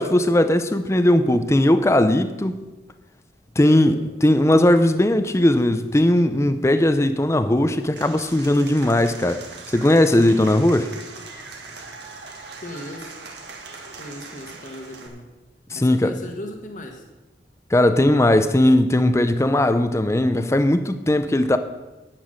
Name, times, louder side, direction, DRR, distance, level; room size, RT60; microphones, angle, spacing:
voice 1, 0.0-2.6 3.6-9.4 9.7-10.9 15.7-16.1 17.7-21.6, left 1 dB, 15° left, 10 dB, 0.5 m, -18 dB
voice 2, 3.6-4.1 12.6-13.2 14.0-15.2 15.7-17.1, left 1 dB, 45° left, 3 dB, 1.3 m, -37 dB
Applause / Crowd, 7.9-15.1, right 4 dB, 70° right, 1.8 m, -40 dB
10.0 x 9.1 x 6.4 m, 1.1 s
head